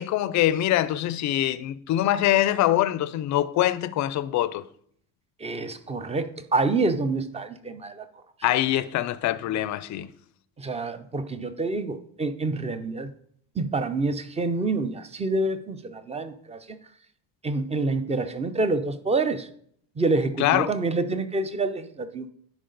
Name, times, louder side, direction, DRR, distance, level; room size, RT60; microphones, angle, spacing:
voice 1, 0.0-4.6 8.4-10.1 20.4-20.7, left 13 dB, 40° left, 0.4 m, -24 dB
voice 2, 5.4-8.1 10.6-13.1 13.6-16.8 17.4-19.5 20.0-22.3, right 3 dB, 15° right, 0.4 m, -27 dB
10.5 x 5.0 x 3.9 m
cardioid pair, 130°, 47 cm